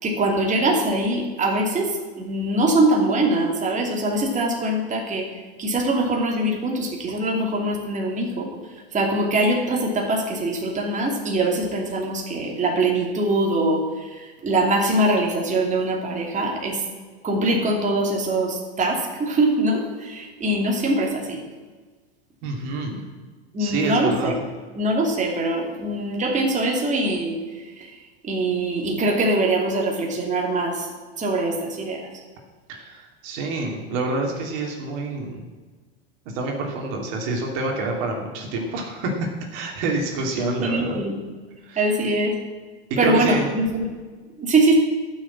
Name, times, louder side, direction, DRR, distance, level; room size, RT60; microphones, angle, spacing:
voice 1, 0.0-5.3 5.6-8.5 8.9-13.8 14.4-16.8 17.2-21.4 22.9-23.0 23.5-24.4 24.8-27.4 28.2-30.9 31.2-32.1 40.6-41.2 41.8-42.3 43.0-43.9 44.4-44.7, right 2 dB, 25° right, 0 dB, 2.7 m, -22 dB
voice 2, 22.4-23.0 23.6-24.4 32.7-35.5 36.3-39.1 39.5-41.0 41.7-41.9 43.0-43.5, right 2 dB, 60° right, 1 dB, 2.7 m, -27 dB
12.0 x 6.5 x 8.7 m, 1.4 s
hypercardioid pair, 110°, 31 cm